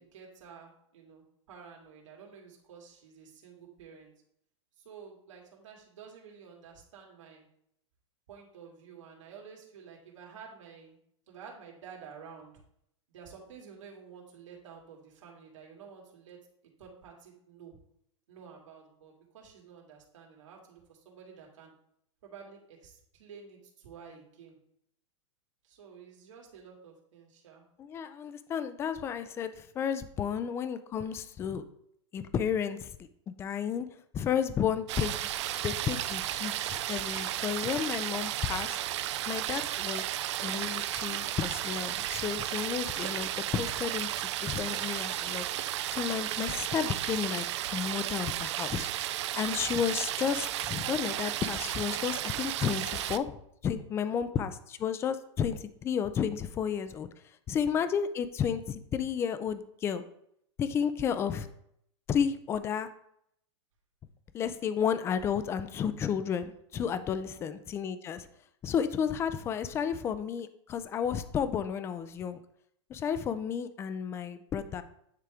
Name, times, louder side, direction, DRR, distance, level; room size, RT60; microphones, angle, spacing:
voice 1, 0.0-4.1 4.8-7.5 8.3-11.0 11.3-12.5 13.1-16.4 16.8-17.8 18.3-21.7 22.2-24.6 25.6-27.6 54.2-54.4 57.6-57.9 67.2-67.6, right 6 dB, 80° right, -2 dB, 2.4 m, -51 dB
voice 2, 27.8-31.6 32.1-33.9 34.1-35.1 35.6-38.8 39.3-40.0 40.4-45.5 45.9-48.9 49.3-53.4 53.6-57.1 57.5-60.0 60.6-61.5 62.1-62.9 64.3-68.3 68.6-72.4 72.9-74.8, left 8 dB, 15° left, 12 dB, 0.4 m, -32 dB
sound 1, 34.9-53.2, right 13 dB, 65° right, 0.4 m, -34 dB
9.5 x 3.6 x 3.5 m, 0.72 s
hypercardioid pair, 145°, 16 cm